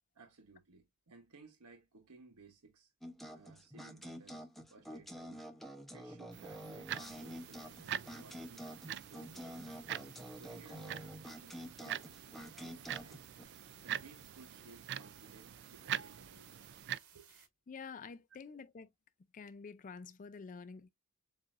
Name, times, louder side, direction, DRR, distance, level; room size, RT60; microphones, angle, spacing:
voice 1, 0.1-2.9 3.3-5.4 5.9-13.2 13.8-16.9 17.1-17.3, right 3 dB, 90° right, 1.1 m, -60 dB
sound 1, 3.0-13.4, equal, ahead, 0.8 m, -48 dB
sound 2, 6.3-17.0, right 11 dB, 50° right, 0.3 m, -45 dB
sound 3, 6.9-17.5, right 8 dB, 75° right, 1.6 m, -61 dB
voice 2, 17.7-18.9 19.3-20.9, left 5 dB, 35° left, 0.4 m, -48 dB
7.5 x 2.5 x 2.5 m
head